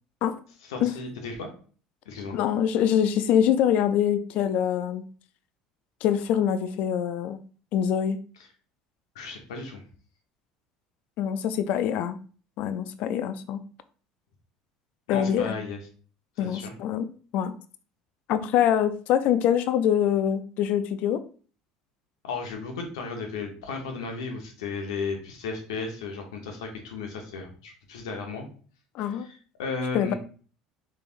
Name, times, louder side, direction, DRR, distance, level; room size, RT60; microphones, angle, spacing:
voice 1, 0.6-1.5 2.0-2.4 9.1-9.8 15.1-15.8 16.4-16.7 22.2-28.5 29.0-30.1, left 4 dB, 90° left, 3 dB, 0.9 m, -34 dB
voice 2, 2.3-5.0 6.0-7.4 7.7-8.2 11.2-12.2 12.6-13.6 15.1-15.5 16.4-17.1 17.3-17.5 18.3-21.2 28.9-29.3 29.9-30.1, left 9 dB, 65° left, 12 dB, 0.4 m, -24 dB
3.5 x 3.3 x 2.5 m, 0.41 s
supercardioid pair, 85°, 3 cm